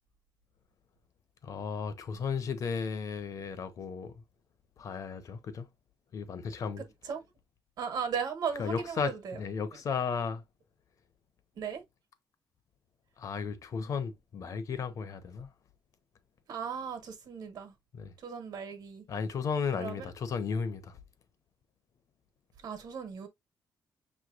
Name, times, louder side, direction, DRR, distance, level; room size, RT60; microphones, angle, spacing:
voice 1, 1.4-4.2 4.8-5.7 6.1-6.8 8.6-10.4 13.2-15.5 17.9-18.1 19.1-21.0, left 6 dB, 50° left, 0.8 m, -34 dB
voice 2, 6.8-7.2 7.8-9.4 11.5-11.8 16.5-17.7 18.2-19.0 19.8-20.1 22.6-23.3, right 6 dB, 60° right, 1.3 m, -37 dB
6.6 x 3.1 x 2.5 m
wide cardioid pair, 175°, 7 cm